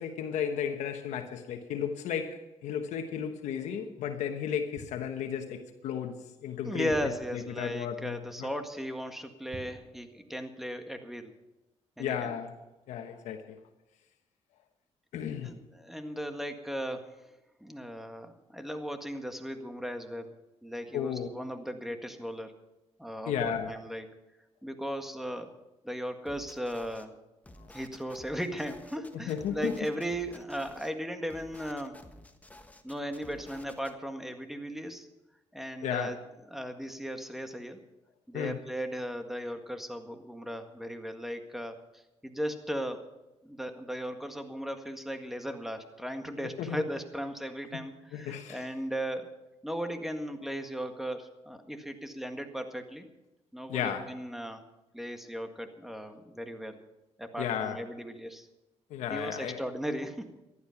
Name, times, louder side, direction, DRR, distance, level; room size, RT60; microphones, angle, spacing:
voice 1, 0.0-8.5 12.0-12.6 12.9-13.6 15.1-15.5 20.9-21.3 23.3-23.8 29.1-29.8 35.8-36.2 38.3-38.6 46.4-46.8 48.1-48.7 53.7-54.1 57.4-57.8 58.9-59.6, left 8 dB, 90° left, 1.1 m, -34 dB
sound 1, 4.7-5.5 6.9-7.9 9.5-10.6 10.9-11.1, right 1 dB, 25° right, 5.0 m, -51 dB
voice 2, 6.6-11.3 12.0-12.3 15.4-17.1 17.6-20.3 20.6-22.5 23.0-24.1 24.6-25.5 25.8-27.2 27.7-32.0 32.8-35.1 35.5-36.2 36.5-37.8 38.3-43.0 43.4-49.3 49.6-53.1 53.5-54.6 54.9-56.8 57.2-58.5 59.1-60.3, equal, 5° right, 1.7 m, -37 dB
sound 2, 26.3-27.1 27.4-30.9 31.3-33.9, left 1 dB, 15° left, 1.3 m, -52 dB
15.0 x 11.5 x 5.8 m
cardioid pair, 85°, 12 cm